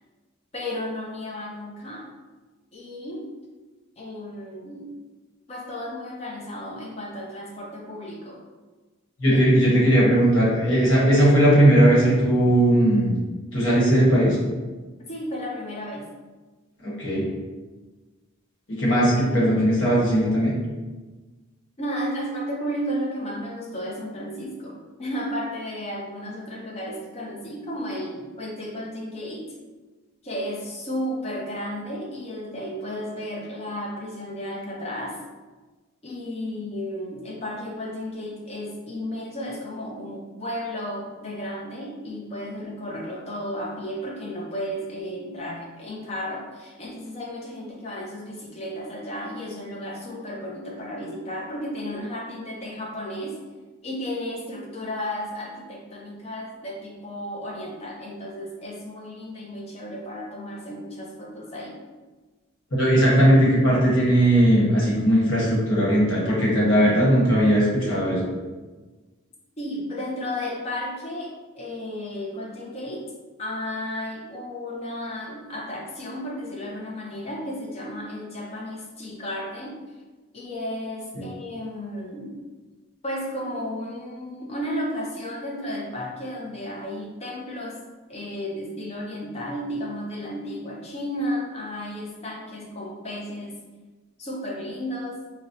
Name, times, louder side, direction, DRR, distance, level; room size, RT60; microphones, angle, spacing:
voice 1, 0.5-2.1 2.7-3.3 4.0-4.9 5.5-8.4 9.3-9.4 15.0-16.1 21.8-29.5 30.2-35.2 36.0-53.3 53.8-61.8 69.6-73.1 73.4-79.8 80.3-82.4 83.0-87.8 88.1-93.6 94.2-95.2, equal, 30° left, -2 dB, 0.4 m, -33 dB
voice 2, 9.2-13.1 13.5-14.4 16.8-17.2 18.7-20.5 62.7-68.3 81.1-81.2, right 1 dB, 60° left, -6 dB, 1.1 m, -18 dB
4.0 x 2.0 x 2.6 m, 1.3 s
head